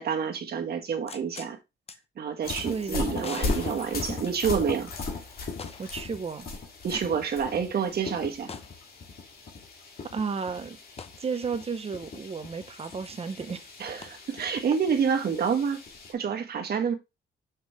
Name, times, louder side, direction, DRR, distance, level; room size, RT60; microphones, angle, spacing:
voice 1, 0.0-1.6 2.2-4.9 6.8-8.5 13.8-15.8 16.1-16.9, right 6 dB, 50° right, 1.4 m, -28 dB
sound 1, 1.1-1.5 1.9-2.0 2.5-2.7 3.2-4.7 5.6-6.0 6.4-6.5 8.5-8.8 11.0-11.2 14.0-14.1, left 5 dB, 30° left, 0.7 m, -42 dB
sound 2, 2.4-16.1, left 3 dB, 45° left, 2.1 m, -38 dB
voice 2, 2.6-3.4 5.8-6.5 6.9-7.0 10.1-10.8 11.2-13.6, right 5 dB, 30° right, 0.8 m, -33 dB
5.9 x 5.5 x 3.1 m
cardioid pair, 145°, 21 cm